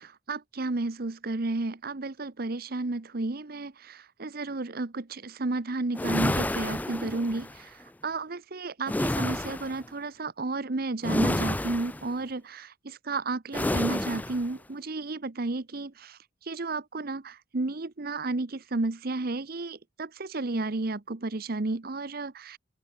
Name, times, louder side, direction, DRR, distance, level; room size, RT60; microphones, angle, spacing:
voice 1, 0.0-7.8 8.0-16.2 16.5-22.6, right 2 dB, 50° right, 0.9 m, -32 dB
sound 1, 5.9-7.6 8.9-9.8 11.0-12.1 13.5-14.5, left 1 dB, 10° left, 0.4 m, -29 dB
head